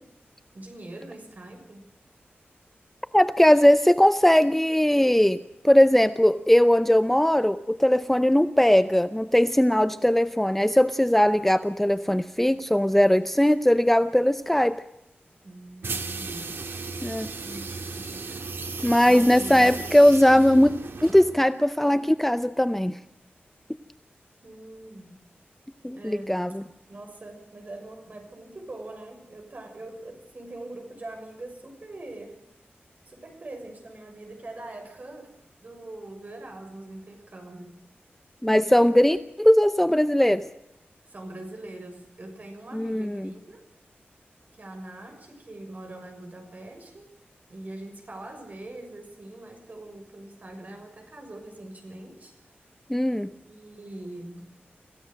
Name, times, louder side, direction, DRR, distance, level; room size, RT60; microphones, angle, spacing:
voice 1, 0.5-1.9 15.4-16.6 17.3-18.2 19.1-19.8 24.4-25.2 26.0-26.5 26.9-32.4 33.0-35.3 35.6-37.8 41.0-43.6 44.5-47.1 47.5-52.3 53.4-54.5, right 2 dB, 45° right, 4 dB, 6.4 m, -42 dB
voice 2, 3.1-5.4 5.6-14.8 17.0-17.3 18.8-20.7 21.0-23.0 25.8-26.6 38.4-40.4 42.7-43.3 52.9-53.3, left 1 dB, 5° left, 11 dB, 0.7 m, -19 dB
sound 1, 15.8-21.5, right 4 dB, 70° right, 2.1 m, -35 dB
26.5 x 16.0 x 6.5 m, 0.82 s
wide cardioid pair, 115°, 4 cm